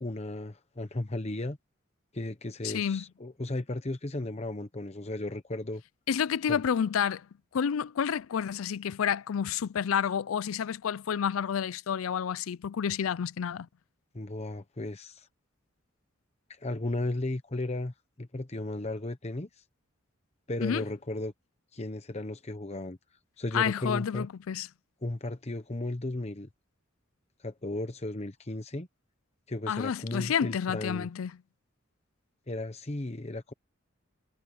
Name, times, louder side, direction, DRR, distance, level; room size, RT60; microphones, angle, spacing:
voice 1, 0.0-1.6 2.1-5.8 6.5-6.6 14.1-15.3 16.5-19.6 20.5-21.3 21.7-23.0 23.4-24.3 25.0-26.5 27.4-28.9 29.5-31.1 32.5-33.5, left 2 dB, 30° left, 1.0 m, -35 dB
voice 2, 2.6-3.0 6.1-7.3 7.5-13.7 20.6-20.8 23.5-24.7 29.7-31.3, left 8 dB, 85° left, 0.4 m, -29 dB
head